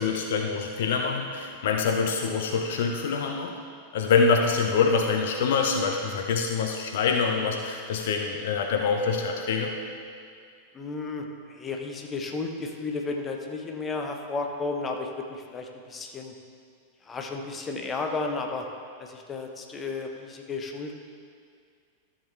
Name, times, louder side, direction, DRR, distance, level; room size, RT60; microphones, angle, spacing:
voice 1, 0.0-3.6 3.9-9.7, left 5 dB, 55° left, 3 dB, 0.7 m, -25 dB
voice 2, 10.7-16.3 17.0-18.7 19.0-21.0, left 3 dB, 20° left, 3 dB, 0.9 m, -33 dB
13.5 x 7.4 x 3.3 m, 2.2 s
figure-of-eight pair, 90°, 0 cm